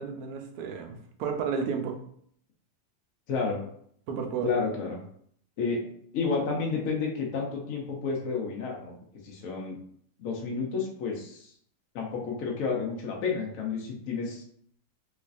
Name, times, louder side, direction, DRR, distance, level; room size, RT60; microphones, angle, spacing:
voice 1, 0.0-2.0 4.1-4.5, right 6 dB, 70° right, 4 dB, 1.0 m, -32 dB
voice 2, 3.3-3.6 4.4-5.0 5.6-5.8 6.1-8.9 9.2-9.8 10.2-11.5 11.9-14.4, left 4 dB, 60° left, -1 dB, 1.0 m, -30 dB
3.3 x 3.1 x 2.5 m, 0.64 s
omnidirectional pair, 1.8 m